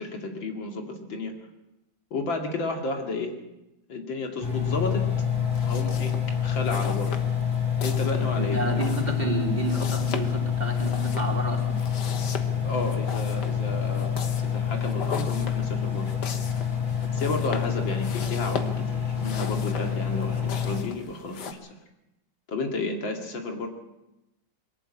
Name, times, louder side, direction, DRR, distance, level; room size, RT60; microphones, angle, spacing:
voice 1, 0.0-1.3 2.1-3.3 3.9-5.1 5.6-7.2 7.8-8.8 12.6-16.1 17.1-21.7 22.5-23.7, left 2 dB, 75° left, 3 dB, 3.1 m, -32 dB
Engine, 4.4-20.8, left 8 dB, 25° left, 3.8 m, -27 dB
sound 1, 5.5-21.5, left 6 dB, 60° left, 1.8 m, -39 dB
voice 2, 8.4-11.8, right 2 dB, 20° right, 1 dB, 3.4 m, -30 dB
22.0 x 13.5 x 8.9 m, 0.95 s
omnidirectional pair, 2.1 m